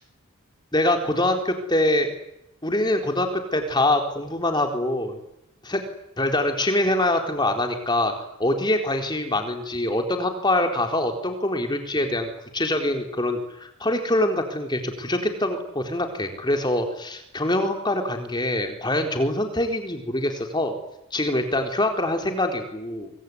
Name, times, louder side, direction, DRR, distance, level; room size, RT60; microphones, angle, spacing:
voice 1, 0.7-2.1 2.6-5.2 5.6-5.8 6.2-8.1 8.4-20.8 21.1-23.1, left 1 dB, 20° left, 4 dB, 4.0 m, -24 dB
25.0 x 24.0 x 9.7 m, 0.83 s
head